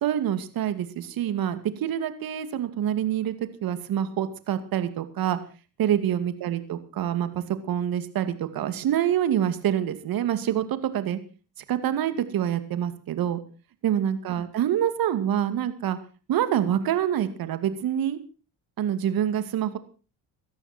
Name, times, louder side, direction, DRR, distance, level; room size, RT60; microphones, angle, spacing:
voice 1, 0.0-3.3 3.6-5.4 5.8-11.2 11.7-13.4 13.8-16.0 16.3-18.2 18.8-19.8, right 10 dB, 60° right, 11 dB, 2.5 m, -26 dB
18.5 x 13.5 x 4.4 m, 0.35 s
supercardioid pair, 85°, 39 cm